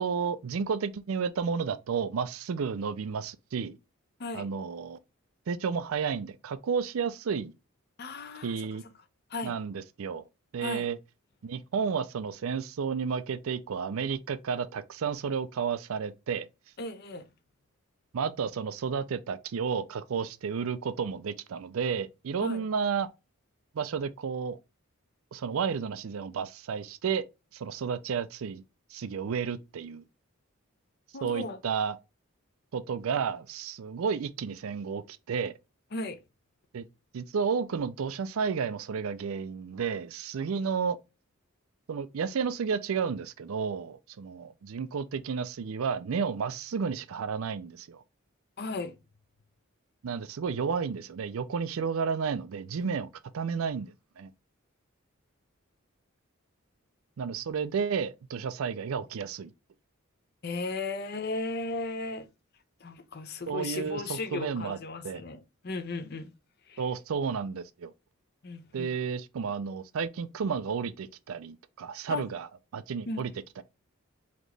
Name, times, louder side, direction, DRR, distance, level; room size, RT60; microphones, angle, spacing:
voice 1, 0.0-3.8 4.3-5.0 5.5-7.5 8.4-8.8 9.4-10.2 10.5-11.0 11.4-16.5 18.1-23.1 23.7-24.6 25.3-27.2 27.5-28.6 28.9-30.0 31.2-32.0 32.7-35.6 36.7-36.9 37.1-41.0 41.9-48.0 50.0-53.1 53.3-54.3 57.2-59.5 63.5-64.8 65.0-65.2 66.8-67.9 68.7-73.6, right 6 dB, 75° right, 0.4 m, -32 dB
voice 2, 8.0-8.6 9.3-9.5 10.6-10.9 16.8-17.2 22.4-22.7 31.1-31.6 35.9-36.2 48.6-48.9 60.4-62.3 62.8-66.3 66.7-66.8 68.4-68.9 72.1-72.2 73.1-73.2, left 3 dB, 50° left, 0.6 m, -36 dB
4.2 x 2.9 x 3.2 m
head